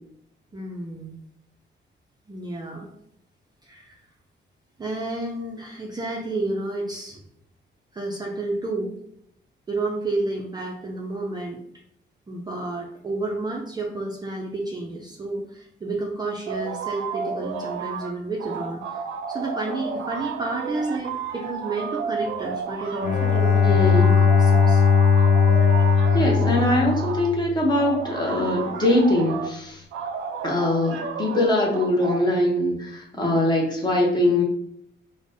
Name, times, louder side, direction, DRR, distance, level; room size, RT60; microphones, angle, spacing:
voice 1, 0.5-1.2 2.3-2.9 3.6-4.0 4.8-7.2 7.9-8.9 9.7-11.6 12.3-19.0 19.3-23.9 24.4-24.9 33.2-33.5, right 2 dB, 20° right, -1 dB, 0.4 m, -30 dB
sound 1, 16.5-18.1 18.4-27.3 27.7-29.5 29.9-32.2, right 5 dB, 85° right, 0.5 m, -32 dB
Bowed string instrument, 23.0-27.7, left 6 dB, 45° left, 0.4 m, -18 dB
voice 2, 23.6-24.2 26.1-29.8 30.4-34.4, left 1 dB, 20° left, -2 dB, 0.7 m, -22 dB
5.0 x 2.1 x 2.6 m, 0.72 s
wide cardioid pair, 155°, 20 cm